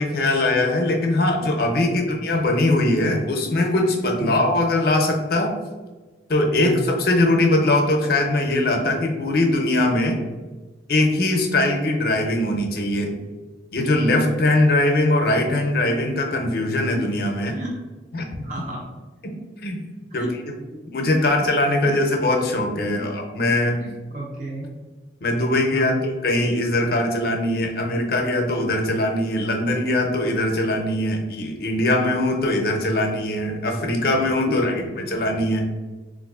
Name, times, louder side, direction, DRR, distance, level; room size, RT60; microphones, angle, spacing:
voice 1, 0.0-5.6 6.3-10.2 10.9-13.2 13.7-17.6 18.1-18.5 19.2-20.3 20.9-23.8 25.2-35.6, left 1 dB, 50° left, 3 dB, 0.5 m, -21 dB
voice 2, 18.4-18.8 20.1-20.3 21.9-22.0 22.8-23.1 23.8-24.8 25.7-26.0 34.5-35.1, right 3 dB, 40° right, -3 dB, 0.4 m, -33 dB
3.8 x 2.4 x 2.3 m, 1.3 s
head